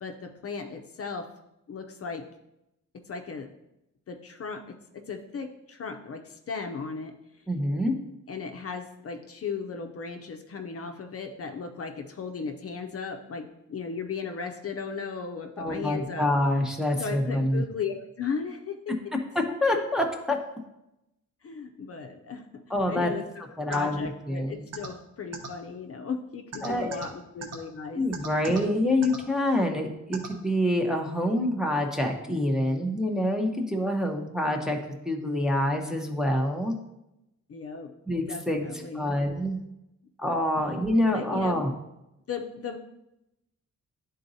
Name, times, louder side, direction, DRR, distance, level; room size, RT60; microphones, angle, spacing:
voice 1, 0.0-1.3 1.7-2.2 2.9-3.5 4.1-7.1 8.3-16.3 17.0-18.9 21.4-28.0 37.5-37.9 38.3-39.1 41.1-41.5 42.3-42.8, left 5 dB, 50° left, 5 dB, 0.6 m, -36 dB
voice 2, 7.5-8.0 15.6-17.6 19.6-20.4 22.7-23.1 23.6-24.6 26.6-27.0 27.9-34.8 35.1-36.7 38.1-39.6 40.2-41.7, left 1 dB, ahead, 1 dB, 0.7 m, -26 dB
sound 1, 23.7-23.8 24.7-24.9 25.3-25.5 26.5-27.0 27.4-27.5 28.1-28.6 29.0-29.2 30.1-30.3, right 5 dB, 55° right, 1.1 m, -36 dB
11.0 x 3.9 x 2.7 m, 0.89 s
wide cardioid pair, 150°, 31 cm